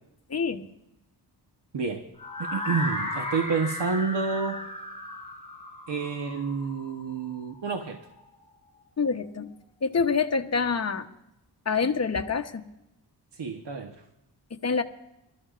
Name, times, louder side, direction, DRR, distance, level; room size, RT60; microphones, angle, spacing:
voice 1, 0.3-0.7 9.0-9.5 9.8-11.1 11.7-12.6 14.5-14.8, left 5 dB, 35° left, 6 dB, 1.0 m, -26 dB
voice 2, 1.7-2.1 2.4-4.6 5.9-8.0 13.3-14.0, right 5 dB, 75° right, 4 dB, 1.2 m, -29 dB
sound 1, 2.2-8.1, left 1 dB, 15° left, 4.6 m, -35 dB
25.0 x 13.0 x 2.5 m, 0.90 s
cardioid pair, 70°, 42 cm